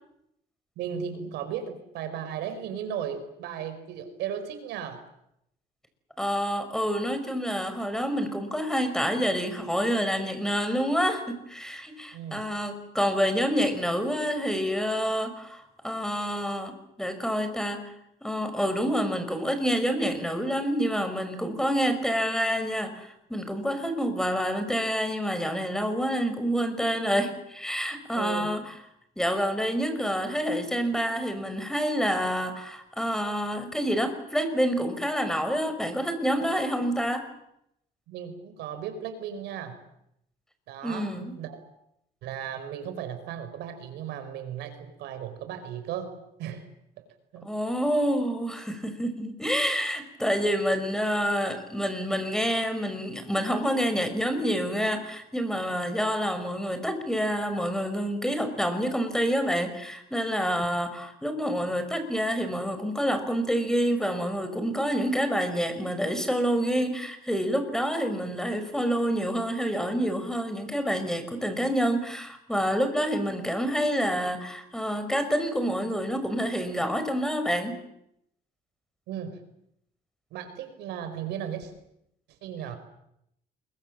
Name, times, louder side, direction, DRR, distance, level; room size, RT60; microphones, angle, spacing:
voice 1, 0.8-5.0 12.1-12.4 28.1-28.6 38.1-39.8 40.7-41.6 42.2-46.1 46.4-46.7 47.0-47.1 47.3-47.5 79.1-79.4 80.3-81.7 82.4-82.8, right 8 dB, 85° right, 9 dB, 4.7 m, -36 dB
voice 2, 6.2-17.8 18.2-28.7 29.2-37.2 40.8-41.4 47.4-77.8, equal, 5° left, 9 dB, 5.1 m, -28 dB
27.0 x 22.5 x 7.6 m, 0.78 s
cardioid pair, 110°, 17 cm